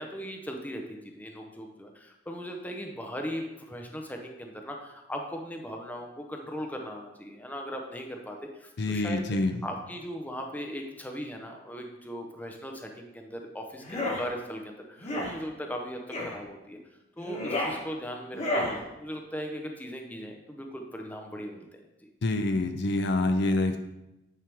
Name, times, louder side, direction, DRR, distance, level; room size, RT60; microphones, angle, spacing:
voice 1, 0.0-9.4 9.6-21.8, equal, 10° left, 2 dB, 0.7 m, -38 dB
voice 2, 8.8-9.5 22.2-23.8, left 2 dB, 60° left, 7 dB, 0.5 m, -26 dB
sound 1, 13.8-14.2 15.0-15.3 16.1-16.4 17.2-17.8 18.3-18.8, left 1 dB, 35° left, 1.3 m, -30 dB
8.9 x 4.7 x 3.5 m, 0.93 s
head